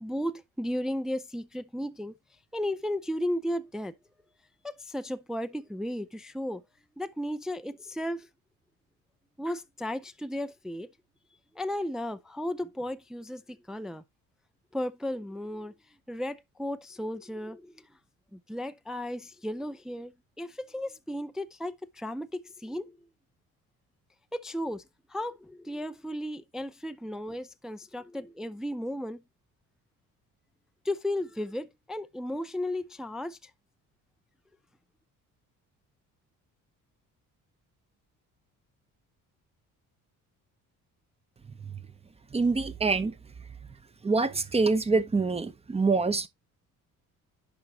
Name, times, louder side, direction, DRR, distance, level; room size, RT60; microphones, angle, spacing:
voice 1, 0.0-2.1 2.5-3.9 4.6-6.6 7.0-8.3 9.4-10.9 11.5-14.0 14.7-15.7 16.1-17.9 18.3-23.0 24.3-24.8 25.1-29.2 30.8-33.5, left 1 dB, ahead, 0.4 m, -34 dB
voice 2, 42.3-43.1 44.0-46.3, right 3 dB, 20° right, 0.9 m, -25 dB
10.5 x 5.1 x 3.0 m
cardioid pair, 130°, 32 cm